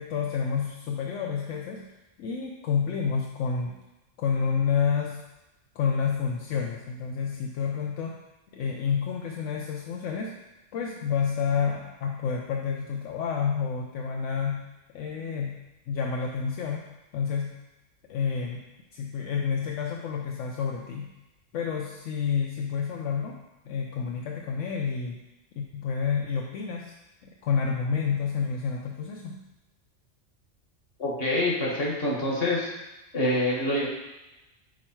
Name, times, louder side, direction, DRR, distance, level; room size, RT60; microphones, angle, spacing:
voice 1, 0.0-1.9 2.2-3.8 4.2-5.2 5.8-8.2 8.5-10.4 10.7-14.6 14.9-15.6 15.9-16.8 17.1-17.5 18.1-18.6 18.9-21.1 21.5-23.4 23.7-25.2 25.6-26.9 27.2-29.4, left 6 dB, 80° left, 0 dB, 1.0 m, -29 dB
voice 2, 31.0-32.7 33.1-33.9, left 1 dB, 50° left, -3 dB, 1.7 m, -26 dB
6.2 x 4.5 x 4.4 m, 1.0 s
omnidirectional pair, 1.3 m